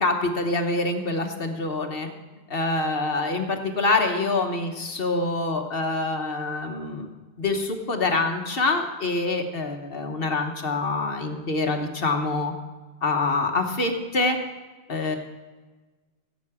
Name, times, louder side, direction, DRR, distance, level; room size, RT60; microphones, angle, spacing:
voice 1, 0.0-2.1 2.5-7.1 7.4-12.5 13.0-14.4 14.9-15.2, left 3 dB, 60° left, 5 dB, 1.3 m, -25 dB
17.0 x 8.4 x 4.9 m, 1.3 s
omnidirectional pair, 1.1 m